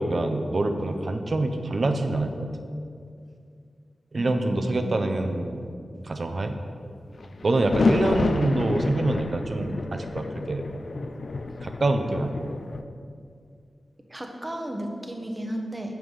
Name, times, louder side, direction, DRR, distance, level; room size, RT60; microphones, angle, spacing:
voice 1, 0.0-2.5 4.1-5.7 6.0-6.6 7.4-10.6 11.6-12.5, right 2 dB, 60° right, 6 dB, 0.5 m, -26 dB
voice 2, 4.2-5.2 14.1-16.0, equal, 20° right, 3 dB, 0.8 m, -34 dB
sound 1, 7.2-12.8, left 3 dB, 65° left, 0.3 m, -28 dB
7.1 x 5.8 x 3.2 m, 2.3 s
cardioid pair, 50°, 0 cm